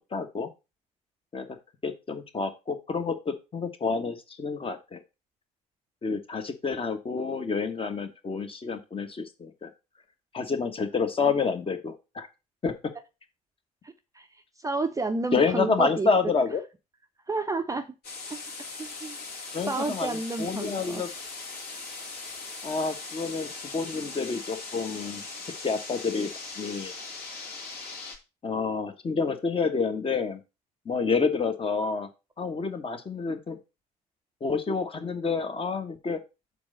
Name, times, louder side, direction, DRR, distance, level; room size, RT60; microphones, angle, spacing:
voice 1, 0.1-0.5 1.3-1.5 1.8-5.0 6.0-9.7 10.3-12.3 12.6-12.7 15.3-16.6 19.5-21.1 22.6-25.2 25.6-26.3 26.6-26.9 28.4-30.4 30.8-32.1 32.4-33.6 34.4-36.2, left 4 dB, 25° left, 8 dB, 1.3 m, -28 dB
voice 2, 13.8-14.3 14.6-16.1 17.3-17.8 18.3-18.5 18.8-19.2 19.7-21.0, right 3 dB, 15° right, 8 dB, 0.7 m, -31 dB
sound 1, 18.0-28.2, left 3 dB, 50° left, 2.3 m, -40 dB
6.9 x 4.1 x 6.4 m, 0.27 s
figure-of-eight pair, 55°, 20 cm